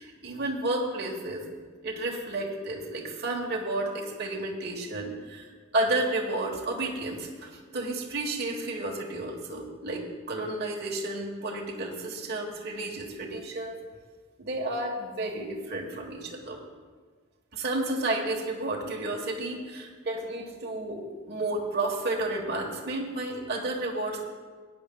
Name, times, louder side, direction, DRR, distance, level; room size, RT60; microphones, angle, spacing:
voice 1, 0.0-1.4 1.8-13.8 14.4-16.6 17.5-24.2, right 2 dB, 50° right, -1 dB, 1.3 m, -32 dB
17.0 x 9.9 x 2.3 m, 1.5 s
head